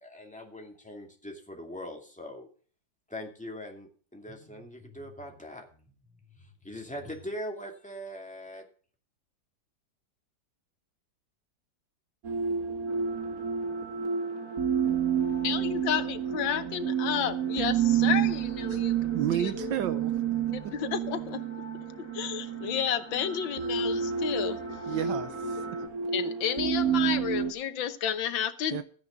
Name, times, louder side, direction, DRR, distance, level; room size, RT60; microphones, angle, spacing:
voice 1, 0.0-2.5 3.1-5.9 6.3-8.6, equal, 5° left, 1 dB, 2.3 m, -41 dB
sound 1, 12.2-27.5, right 8 dB, 55° right, 1.6 m, -30 dB
sound 2, 12.9-25.9, equal, 45° left, 3.9 m, -48 dB
voice 2, 15.4-19.8 20.4-21.4 22.1-24.6 26.1-28.8, left 9 dB, 85° left, 12 dB, 1.7 m, -31 dB
voice 3, 19.1-20.1 24.9-25.6 28.7-28.8, right 10 dB, 80° right, 11 dB, 1.5 m, -31 dB
14.0 x 10.0 x 3.9 m, 0.42 s
omnidirectional pair, 2.0 m